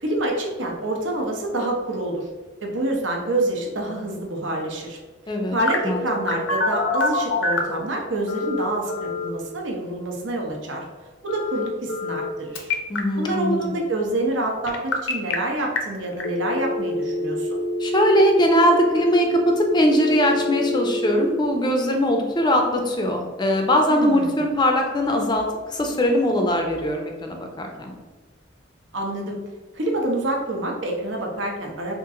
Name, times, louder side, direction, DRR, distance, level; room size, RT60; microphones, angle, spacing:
voice 1, 0.0-2.3 2.6-5.0 5.5-10.8 11.2-12.7 13.2-17.6 23.9-24.4 28.9-29.4 29.7-31.9, right 1 dB, 80° right, 0 dB, 0.7 m, -27 dB
Telephone, 5.7-7.8 8.3-9.3 11.3-12.3 12.6-13.0 14.7-15.3 15.8-15.9 16.2-21.3, left 2 dB, 80° left, 0.5 m, -26 dB
voice 2, 12.9-13.7 17.8-27.9, equal, 25° left, 2 dB, 0.4 m, -21 dB
2.9 x 2.5 x 3.6 m, 1.3 s
head